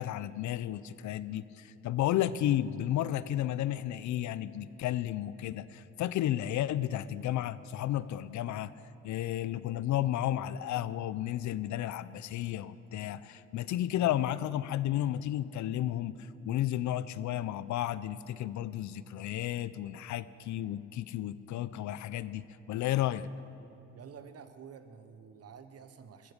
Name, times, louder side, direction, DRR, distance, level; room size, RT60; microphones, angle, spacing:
voice 1, 0.0-8.7 9.0-16.1 16.4-23.3, left 12 dB, 70° left, 17 dB, 0.5 m, -32 dB
voice 2, 23.9-26.3, right 6 dB, 55° right, 10 dB, 1.1 m, -50 dB
14.5 x 13.5 x 5.1 m, 3.0 s
cardioid pair, 90°, 30 cm